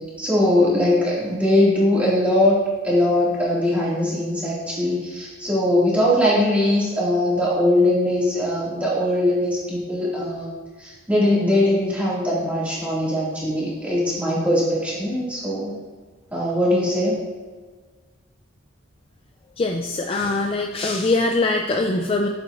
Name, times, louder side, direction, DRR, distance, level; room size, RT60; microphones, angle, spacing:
voice 1, 0.2-10.5 10.8-15.7 16.3-17.2, left 1 dB, 5° right, -8 dB, 2.1 m, -21 dB
voice 2, 19.6-22.3, left 2 dB, 25° left, 3 dB, 0.3 m, -22 dB
8.7 x 7.2 x 2.5 m, 1.4 s
head